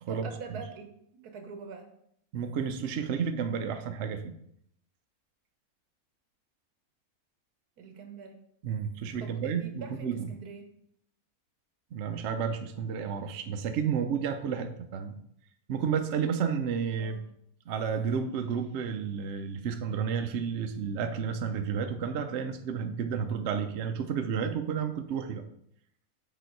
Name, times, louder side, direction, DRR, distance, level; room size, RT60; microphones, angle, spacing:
voice 1, 0.1-1.9 7.8-8.4 9.2-10.7 17.0-17.3, right 6 dB, 80° right, 6 dB, 1.4 m, -44 dB
voice 2, 2.3-4.3 8.6-10.3 11.9-15.2 15.7-17.2 17.7-25.4, right 7 dB, 60° right, 7 dB, 0.8 m, -31 dB
6.9 x 4.0 x 4.6 m, 0.70 s
omnidirectional pair, 1.6 m